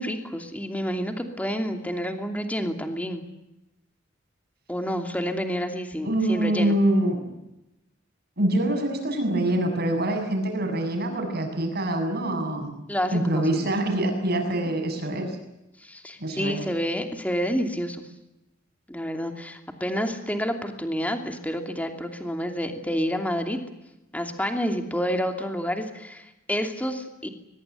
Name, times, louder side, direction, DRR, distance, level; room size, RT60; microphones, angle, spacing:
voice 1, 0.0-3.3 4.7-6.8 12.9-13.7 15.8-18.0 18.9-23.6 24.1-27.3, equal, 10° left, 5 dB, 2.7 m, -29 dB
voice 2, 6.0-7.3 8.4-12.7 13.1-15.4 16.2-16.6, right 1 dB, 55° right, 4 dB, 7.0 m, -25 dB
22.5 x 22.0 x 9.3 m, 0.91 s
head